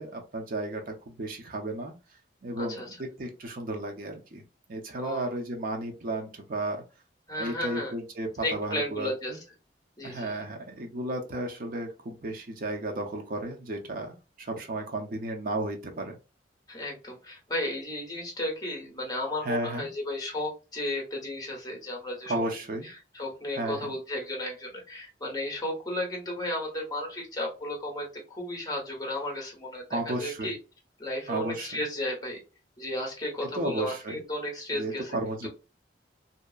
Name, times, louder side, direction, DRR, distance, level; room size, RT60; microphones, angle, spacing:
voice 1, 0.0-1.9 2.4-4.4 4.7-6.8 7.3-9.4 10.0-16.2 19.4-19.9 22.3-22.9 23.5-23.9 29.9-30.5 31.3-31.7 33.5-34.2 34.7-35.5, right 2 dB, 50° right, 3 dB, 0.6 m, -33 dB
voice 2, 4.9-5.3 7.3-7.9 8.4-9.4 10.0-10.3 16.7-22.3 22.8-30.6 31.0-32.4 32.8-35.2 35.4-35.5, left 1 dB, 20° left, 0 dB, 1.0 m, -34 dB
2.8 x 2.2 x 2.3 m, 0.31 s
head